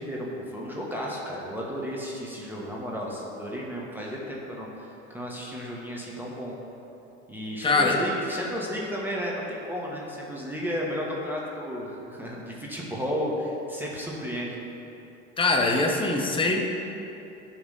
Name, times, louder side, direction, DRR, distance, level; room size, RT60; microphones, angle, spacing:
voice 1, 0.0-6.5 7.3-14.6, equal, 5° right, -4 dB, 1.4 m, -33 dB
voice 2, 7.6-8.0 15.4-16.6, left 3 dB, 15° left, 1 dB, 0.9 m, -22 dB
10.5 x 3.6 x 6.5 m, 2.9 s
supercardioid pair, 95°, 38 cm